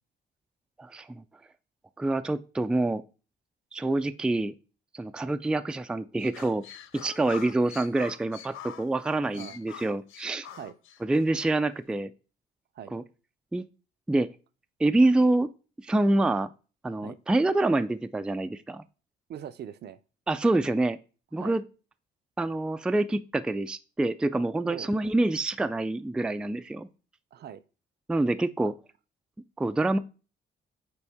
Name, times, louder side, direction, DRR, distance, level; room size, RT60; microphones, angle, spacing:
voice 1, 0.8-1.2 2.0-3.0 3.7-4.5 4.9-6.6 6.9-10.5 11.0-12.1 12.9-13.0 13.5-13.7 14.1-14.3 14.8-15.5 15.8-16.5 16.8-18.8 20.3-21.0 21.3-21.6 22.4-26.9 28.1-28.7 29.6-30.0, right 2 dB, 5° right, 0.3 m, -26 dB
sound 1, 6.2-11.3, left 10 dB, 85° left, 0.6 m, -45 dB
voice 2, 19.3-20.0 21.4-21.6 24.6-24.9 27.3-27.6 28.6-28.7, right 9 dB, 55° right, 0.5 m, -42 dB
6.9 x 4.6 x 3.5 m
cardioid pair, 90°, 20 cm